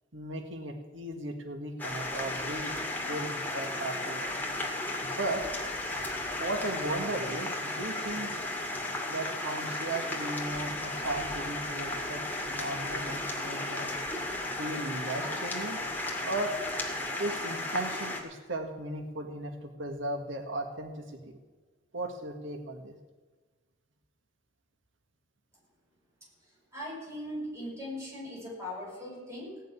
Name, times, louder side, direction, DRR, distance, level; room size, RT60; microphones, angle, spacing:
voice 1, 0.1-4.3 5.0-5.6 6.4-8.4 9.1-12.2 12.5-13.9 14.6-15.8 16.2-16.6 17.2-21.4 21.9-22.9, right 2 dB, 80° right, 4 dB, 1.7 m, -36 dB
sound 1, 1.8-18.2, left 2 dB, 10° left, 2.3 m, -34 dB
voice 2, 26.7-29.6, left 1 dB, 15° right, -5 dB, 6.4 m, -39 dB
17.5 x 6.5 x 9.6 m, 1.3 s
head